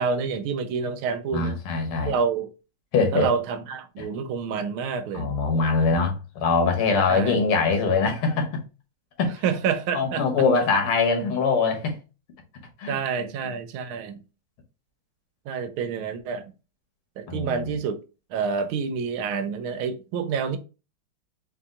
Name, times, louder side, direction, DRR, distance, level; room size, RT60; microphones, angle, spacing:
voice 1, 0.0-1.6 2.0-2.5 3.1-5.3 7.1-7.4 9.4-10.3 12.9-14.2 15.5-16.5 17.2-18.0 18.3-20.6, right 6 dB, 80° right, 1.5 m, -28 dB
voice 2, 1.3-2.2 2.9-3.3 4.0-4.1 5.1-8.6 9.2-9.4 9.9-12.0 12.8-13.3 17.3-17.7, left 4 dB, 85° left, 2.0 m, -23 dB
4.3 x 2.9 x 3.6 m
omnidirectional pair, 2.3 m